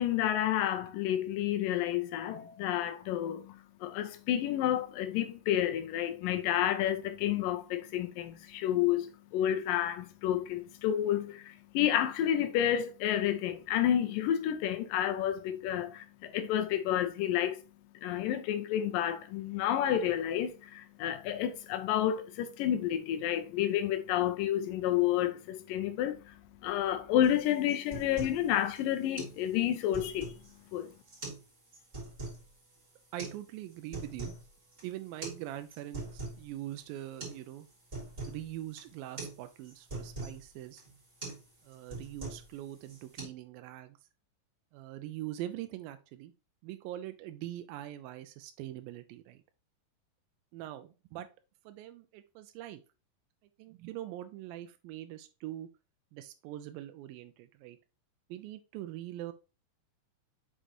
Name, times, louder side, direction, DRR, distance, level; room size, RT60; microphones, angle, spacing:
voice 1, 0.0-17.6 18.0-30.4 30.7-30.9, left 11 dB, 80° left, 2.3 m, -30 dB
sound 1, 27.2-27.4 27.7-28.4 28.7-28.8 29.2-29.4 29.7-30.5 31.1-31.4 31.7-32.4 33.2-33.4 33.7-34.4 34.7-34.8 35.2-35.4 35.7-36.4 36.8-36.9 37.2-37.4 37.7-38.4 38.8-38.9 39.2-39.4 39.6-40.4 40.8-40.9 41.2-41.4 41.7-42.5 42.8-43.2, right 3 dB, 20° right, 3.5 m, -42 dB
voice 2, 33.1-34.3 34.8-37.7 38.2-40.8 41.6-44.0 44.7-46.3 46.6-49.4 50.5-51.3 51.7-52.8 53.6-55.7 56.1-57.8 58.3-59.3, right 13 dB, 85° right, 2.3 m, -43 dB
6.4 x 5.1 x 2.9 m
omnidirectional pair, 4.1 m